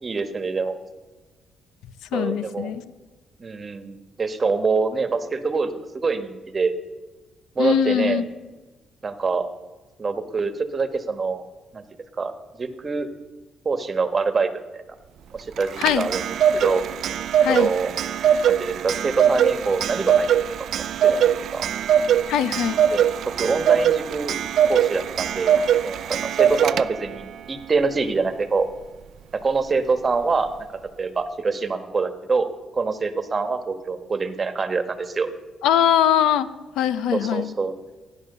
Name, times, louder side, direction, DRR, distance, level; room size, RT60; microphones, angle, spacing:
voice 1, 0.0-0.8 2.1-2.7 3.4-6.8 7.5-8.2 9.0-9.5 10.0-11.4 11.7-11.8 12.2-12.3 12.6-13.1 13.6-14.8 15.3-16.2 16.5-16.8 17.5-17.9 18.5-20.3 21.0-21.7 22.9-24.3 24.7-28.7 29.4-30.5 31.0-32.5 32.7-35.3 37.1-37.7, right 4 dB, 35° right, 9 dB, 1.4 m, -25 dB
voice 2, 2.1-2.8 7.6-8.2 15.8-16.1 17.4-17.7 22.3-22.8 35.6-36.5 36.8-37.5, left 10 dB, 90° left, 15 dB, 0.6 m, -21 dB
Clock, 15.6-27.2, right 8 dB, 70° right, 0.4 m, -21 dB
14.0 x 10.0 x 6.7 m, 1.2 s
cardioid pair, 90°, 0 cm